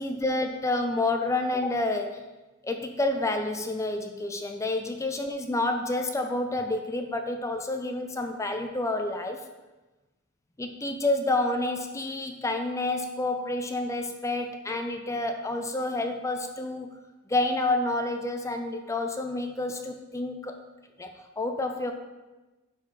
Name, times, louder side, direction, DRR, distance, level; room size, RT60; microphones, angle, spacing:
voice 1, 0.0-2.2 2.6-9.4 10.6-16.9 17.3-20.5 21.0-21.1 21.4-21.9, left 2 dB, 15° left, 5 dB, 0.5 m, -29 dB
11.5 x 4.6 x 4.0 m, 1.1 s
head